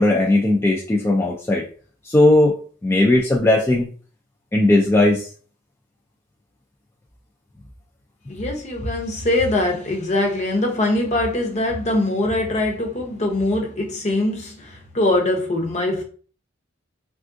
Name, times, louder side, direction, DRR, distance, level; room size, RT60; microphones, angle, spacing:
voice 1, 0.0-1.6 2.1-3.9 4.5-5.3, left 2 dB, 15° left, 0.3 m, -17 dB
voice 2, 8.3-16.0, left 1 dB, 35° left, 0.7 m, -22 dB
3.5 x 2.4 x 2.5 m
head